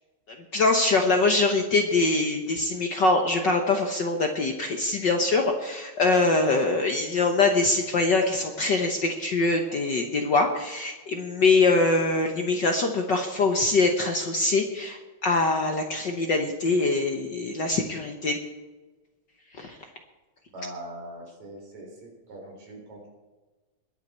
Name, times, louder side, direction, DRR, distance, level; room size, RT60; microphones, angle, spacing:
voice 1, 0.5-18.4 19.5-19.8, left 3 dB, 60° left, 4 dB, 1.2 m, -23 dB
voice 2, 20.5-23.1, right 1 dB, 75° right, 0 dB, 5.2 m, -41 dB
21.5 x 8.9 x 4.4 m, 1.2 s
omnidirectional pair, 3.3 m